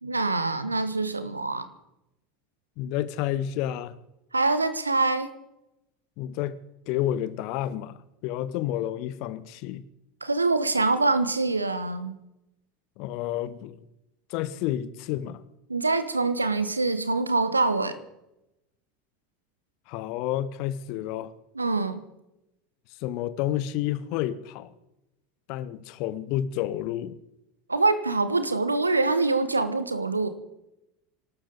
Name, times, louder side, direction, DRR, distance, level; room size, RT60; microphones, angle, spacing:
voice 1, 0.0-1.7 4.3-5.3 10.2-12.1 15.7-18.0 21.5-22.0 27.7-30.3, right 3 dB, 85° right, 1.1 m, -25 dB
voice 2, 2.8-3.9 6.2-6.6 6.9-9.8 13.0-13.8 14.3-15.4 19.9-21.3 23.0-24.7 25.5-27.2, left 12 dB, 50° left, 0.9 m, -30 dB
25.5 x 13.0 x 4.0 m
figure-of-eight pair, 75°, 0 cm